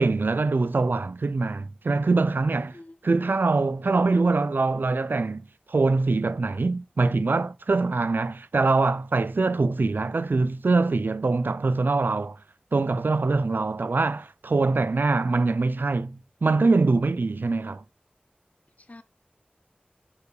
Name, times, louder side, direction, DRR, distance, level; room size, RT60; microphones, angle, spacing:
voice 1, 0.0-2.8 3.0-5.4 5.7-12.4 12.7-17.8, right 3 dB, 85° right, 0.5 m, -23 dB
voice 2, 2.6-3.1 18.8-19.0, left 2 dB, 50° left, 1.2 m, -48 dB
9.9 x 4.7 x 4.8 m
wide cardioid pair, 45°, 3 cm